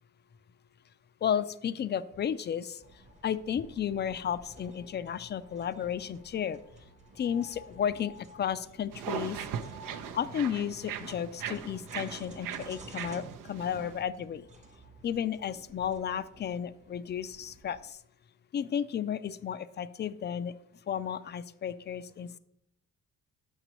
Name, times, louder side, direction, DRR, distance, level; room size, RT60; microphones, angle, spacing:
voice 1, 1.2-2.8 3.2-6.6 7.2-9.4 10.1-14.5 15.0-18.0 18.5-20.5 20.9-22.4, left 8 dB, 35° left, 14 dB, 0.4 m, -33 dB
sound 1, 2.8-17.9, right 2 dB, 20° right, 0.8 m, -54 dB
sound 2, 8.9-14.0, right 9 dB, 80° right, 0.6 m, -39 dB
8.1 x 5.9 x 3.0 m, 0.79 s
cardioid pair, 105°, 32 cm